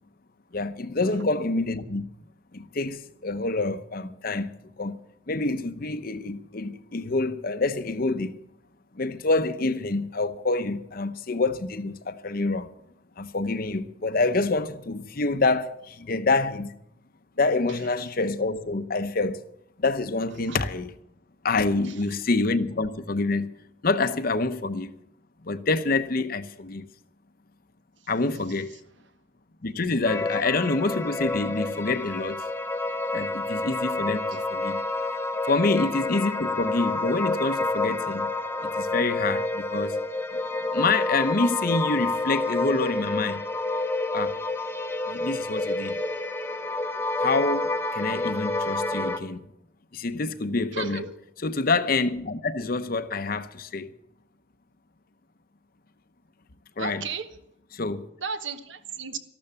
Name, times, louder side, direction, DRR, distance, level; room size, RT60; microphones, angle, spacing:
voice 1, 0.5-2.1 2.5-4.5 4.8-5.0 5.3-8.4 8.9-12.7 13.2-16.7 17.4-19.4 19.8-20.9 21.4-23.5 23.8-24.9 25.4-26.9 28.1-28.8 29.6-32.5 33.1-34.8 35.4-38.3 38.6-40.0 40.7-43.4 44.1-44.4 45.1-46.0 47.2-49.4 49.9-51.1 51.4-53.9 56.8-57.0 57.7-58.1, left 3 dB, 50° left, 0.8 m, -27 dB
sound 1, 30.0-49.2, left 2 dB, 10° left, 0.8 m, -29 dB
voice 2, 50.7-51.1 56.8-57.3 58.2-59.2, right 5 dB, 70° right, 1.3 m, -34 dB
13.5 x 12.0 x 7.0 m
head